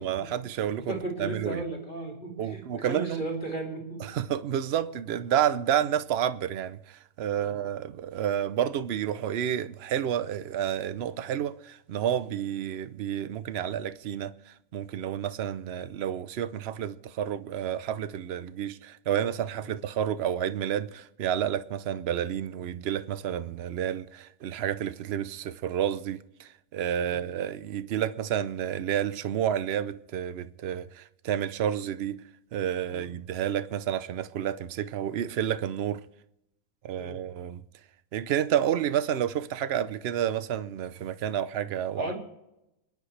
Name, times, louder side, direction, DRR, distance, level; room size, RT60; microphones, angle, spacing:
voice 1, 0.0-1.6 2.4-3.2 4.0-32.2 32.5-36.0 36.8-37.6 38.1-42.1, right 10 dB, 65° right, 0.6 m, -30 dB
voice 2, 0.9-4.1 7.4-7.6 19.6-19.8 27.0-27.2 32.9-33.1 37.0-37.2 42.0-42.2, right 2 dB, 30° left, 3.6 m, -35 dB
27.5 x 10.5 x 3.3 m
omnidirectional pair, 1.8 m